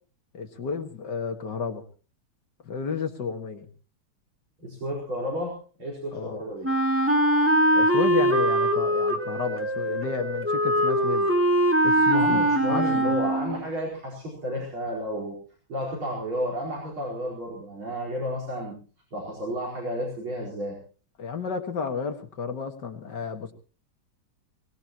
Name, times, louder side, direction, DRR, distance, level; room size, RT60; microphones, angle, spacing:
voice 1, 0.3-1.8 2.6-3.7 6.1-6.4 7.7-11.3 11.8-13.2 21.2-23.5, left 5 dB, 55° left, 5 dB, 2.2 m, -31 dB
voice 2, 4.6-6.7 12.1-15.4 15.7-18.8 19.1-20.8, equal, 80° right, -4 dB, 5.6 m, -32 dB
Wind instrument woodwind instrument, 6.6-13.6, right 1 dB, 5° right, 2.0 m, -22 dB
22.5 x 19.5 x 3.0 m, 0.39 s
omnidirectional pair, 2.2 m